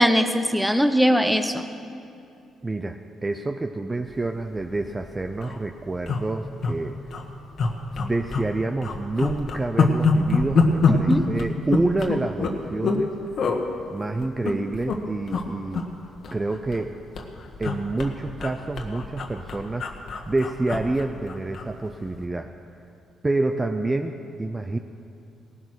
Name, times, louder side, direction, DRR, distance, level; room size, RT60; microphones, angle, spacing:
voice 1, 0.0-1.6 10.9-11.3, equal, ahead, 8 dB, 0.9 m, -20 dB
voice 2, 2.6-7.0 7.9-13.2 13.9-15.9 16.3-17.0 17.6-19.9 20.3-22.5 23.2-24.8, right 2 dB, 20° right, 6 dB, 0.6 m, -28 dB
sound 1, 4.6-4.8 5.1-5.2 5.3-5.6 6.1-6.7 7.1-7.2 7.6-8.5 8.8-13.0 13.4-13.6 14.2-15.0 15.3-15.5 15.7-16.9 17.2-21.7 22.0-22.2, left 4 dB, 60° left, 1.5 m, -25 dB
18.0 x 11.0 x 6.3 m, 2.6 s
cardioid pair, 90°, 0 cm